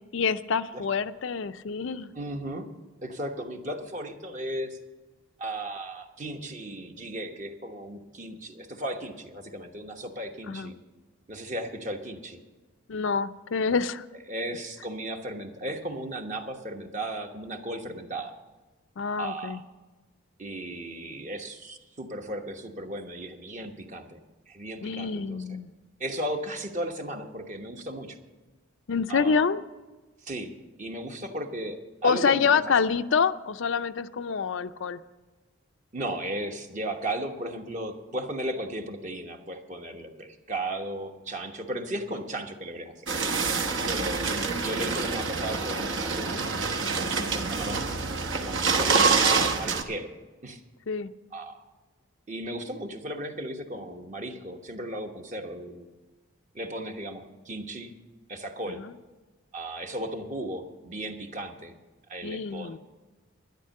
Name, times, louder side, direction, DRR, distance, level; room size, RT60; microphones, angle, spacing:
voice 1, 0.1-2.1 10.5-10.7 12.9-14.1 19.0-19.6 24.8-25.7 28.9-29.6 32.0-35.0 43.8-44.1 47.1-47.4 50.9-51.1 58.8-58.9 62.2-62.8, left 5 dB, 60° left, 11 dB, 0.5 m, -27 dB
voice 2, 2.1-2.7 3.0-4.8 5.4-10.8 11.3-12.4 14.3-18.4 19.2-19.6 20.4-24.2 24.5-25.4 26.0-28.2 29.1-29.4 30.2-30.5 30.8-32.6 35.9-42.9 43.8-44.3 44.6-46.4 47.2-47.9 48.4-50.1 50.4-50.6 51.3-51.6 52.3-55.9 56.5-57.9 58.3-58.8 59.5-61.7 62.1-62.8, right 1 dB, 35° right, 4 dB, 1.2 m, -35 dB
sound 1, 43.1-49.8, right 4 dB, 55° right, 1.1 m, -26 dB
12.0 x 10.5 x 6.5 m, 1.2 s
head